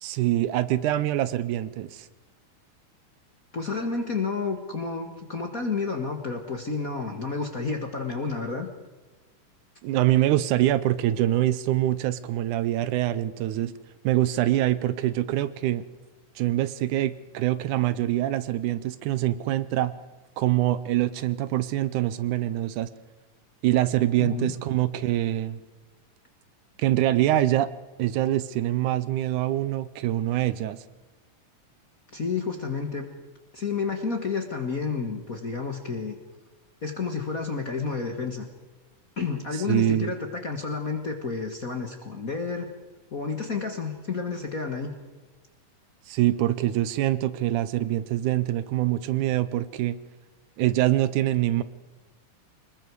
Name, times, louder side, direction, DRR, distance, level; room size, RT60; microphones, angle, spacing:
voice 1, 0.0-2.1 9.8-13.7 14.0-15.8 16.4-19.9 20.4-22.9 23.6-25.6 26.8-27.7 28.0-30.8 39.7-40.1 46.1-50.0 50.6-51.6, right 14 dB, 80° right, 15 dB, 2.2 m, -24 dB
voice 2, 3.5-8.7 24.2-24.5 32.1-33.1 33.5-36.2 36.8-38.4 39.2-42.7 43.1-44.9, left 4 dB, 40° left, 4 dB, 1.4 m, -30 dB
26.0 x 21.0 x 4.7 m, 1.2 s
omnidirectional pair, 3.6 m